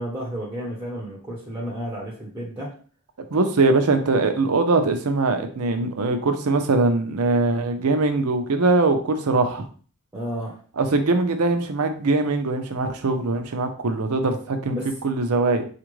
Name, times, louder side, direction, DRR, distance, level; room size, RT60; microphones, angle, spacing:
voice 1, 0.0-2.7 10.1-10.6 14.7-14.9, equal, 10° right, -4 dB, 0.7 m, -32 dB
voice 2, 3.3-9.6 10.8-14.8 15.0-15.7, right 3 dB, 80° right, 6 dB, 0.6 m, -21 dB
4.3 x 2.5 x 3.1 m, 0.42 s
head